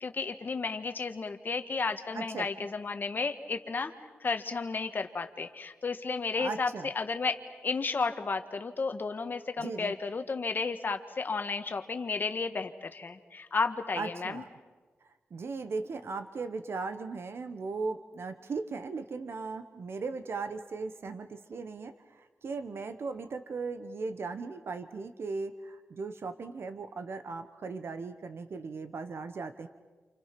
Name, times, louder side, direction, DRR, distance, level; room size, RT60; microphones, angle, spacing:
voice 1, 0.0-3.9 4.2-14.4, left 4 dB, 50° left, 7 dB, 1.6 m, -33 dB
voice 2, 2.1-2.5 6.4-6.9 9.6-9.9 14.0-14.5 15.3-29.7, right 4 dB, 70° right, 10 dB, 1.1 m, -37 dB
29.0 x 28.0 x 6.0 m, 1.3 s
wide cardioid pair, 105°, 4 cm